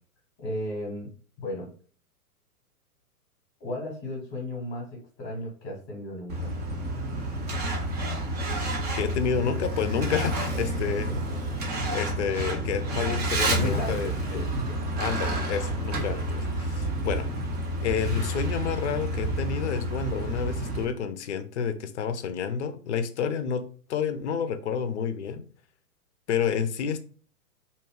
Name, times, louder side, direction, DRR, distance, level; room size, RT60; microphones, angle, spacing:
voice 1, 0.4-1.1 1.4-1.7 3.6-6.5 13.5-14.1 14.5-14.8, left 1 dB, 25° left, -2 dB, 0.9 m, -34 dB
Truck, 6.3-20.8, right 1 dB, 25° right, 0.6 m, -29 dB
voice 2, 9.0-11.1 11.7-14.5 15.0-17.3 17.8-23.6 23.9-25.4 26.3-27.0, left 7 dB, 50° left, 10 dB, 0.5 m, -29 dB
2.7 x 2.1 x 3.1 m, 0.41 s
figure-of-eight pair, 110°, 45 cm